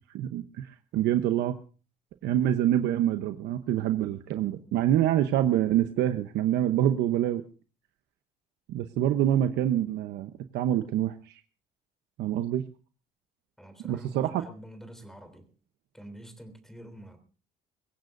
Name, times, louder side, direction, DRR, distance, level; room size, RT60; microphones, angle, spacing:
voice 1, 0.1-1.6 2.2-7.4 8.7-11.4 12.2-12.6 13.8-14.4, right 11 dB, 80° right, 0.9 m, -26 dB
voice 2, 13.6-15.5 15.9-17.2, right 1 dB, 5° left, 3.4 m, -47 dB
23.5 x 16.0 x 2.6 m
cardioid pair, 110°, 17 cm